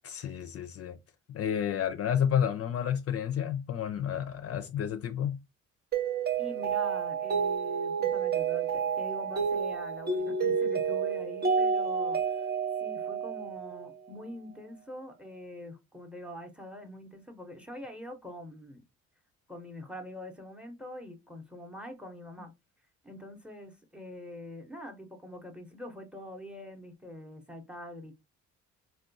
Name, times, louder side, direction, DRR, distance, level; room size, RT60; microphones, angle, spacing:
voice 1, 0.0-1.0 1.3-5.4, left 9 dB, 50° left, 0.4 m, -30 dB
Mallet percussion, 5.9-14.1, right 6 dB, 35° right, 0.5 m, -30 dB
voice 2, 6.4-12.4 12.8-18.8 19.5-22.5 23.0-28.1, left 1 dB, 5° right, 0.7 m, -44 dB
3.5 x 2.2 x 2.5 m
cardioid pair, 90°, 30 cm